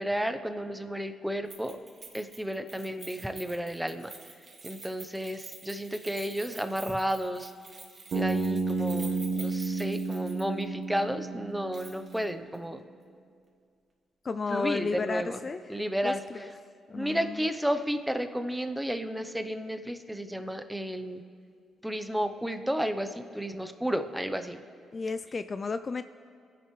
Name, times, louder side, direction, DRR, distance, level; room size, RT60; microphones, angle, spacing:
voice 1, 0.0-1.8 2.1-4.1 4.6-7.5 8.1-12.8 14.5-15.4 15.7-16.2 16.9-21.2 21.8-24.6, equal, 5° right, 8 dB, 0.8 m, -32 dB
Keys jangling, 1.5-10.6 11.0-11.1 11.7-12.2 12.5-12.6, right 4 dB, 45° right, 2.0 m, -48 dB
Bass guitar, 8.1-12.2, right 3 dB, 65° right, 1.3 m, -31 dB
voice 2, 14.2-16.5 16.9-17.5 24.9-26.0, left 4 dB, 40° left, 11 dB, 0.3 m, -33 dB
24.0 x 10.5 x 3.2 m, 2.3 s
cardioid pair, 80°, 0 cm